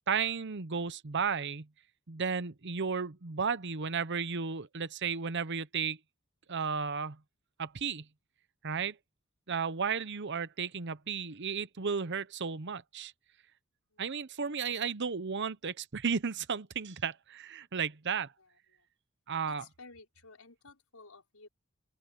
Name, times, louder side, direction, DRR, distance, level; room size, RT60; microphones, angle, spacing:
voice 1, 0.1-1.7 2.1-6.0 6.5-7.2 7.6-8.1 8.6-9.0 9.5-13.1 14.0-18.3 19.3-19.6, right 6 dB, 55° right, 0.9 m, -34 dB
voice 2, 18.1-18.9 19.5-21.5, left 3 dB, 80° left, 5.4 m, -56 dB
open air
head